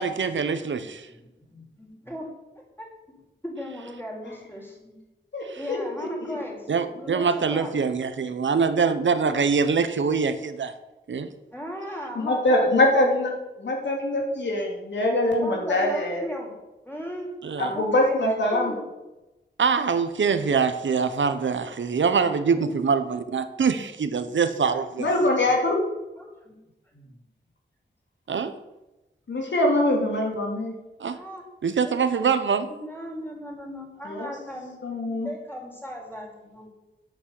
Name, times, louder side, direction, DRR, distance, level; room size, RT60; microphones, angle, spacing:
voice 1, 0.0-1.1 5.5-5.6 6.7-10.7 11.1-11.3 17.4-17.7 19.6-25.1 28.3-28.5 31.0-31.2 31.6-32.7, right 5 dB, 85° right, 10 dB, 1.1 m, -24 dB
voice 2, 0.7-2.3 2.8-5.0 5.6-7.9 11.5-12.7 15.4-16.5 16.8-18.8 22.5-22.8 25.6-25.7 26.2-26.6 26.9-27.2 31.0-31.4 31.8-31.9 32.7-34.8 35.2-36.7, equal, 10° left, -2 dB, 5.5 m, -37 dB
voice 3, 5.3-6.4 12.1-16.2 17.6-18.7 25.0-25.8 29.3-30.7 34.0-34.3 34.8-35.3, left 1 dB, 75° left, 0 dB, 3.6 m, -23 dB
10.5 x 8.6 x 8.4 m, 1.0 s
wide cardioid pair, 90°, 19 cm